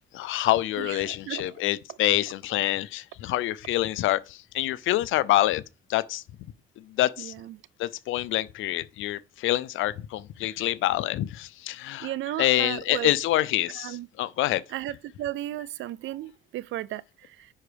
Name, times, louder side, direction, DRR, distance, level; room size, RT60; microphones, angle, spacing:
voice 1, 0.0-5.6 5.9-6.2 6.8-7.3 7.8-14.6, left 15 dB, 85° left, 0.6 m, -26 dB
voice 2, 0.8-1.5 7.2-7.5 12.0-13.1 13.8-14.1 14.7-17.5, right 14 dB, 80° right, 0.5 m, -35 dB
10.0 x 4.6 x 5.1 m
cardioid pair, 90°, 20 cm